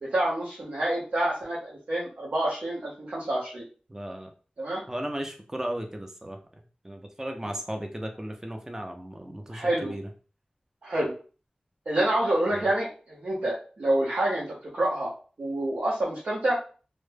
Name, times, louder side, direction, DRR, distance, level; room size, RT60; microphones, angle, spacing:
voice 1, 0.0-3.6 4.6-4.8 9.5-10.0 10.8-11.1 11.9-16.6, right 1 dB, 80° right, -6 dB, 0.7 m, -27 dB
voice 2, 3.9-4.3 4.9-6.4 6.8-10.1 12.5-12.7, right 1 dB, 20° right, 4 dB, 0.5 m, -35 dB
2.1 x 2.0 x 3.2 m, 0.38 s
wide cardioid pair, 60°, 3 cm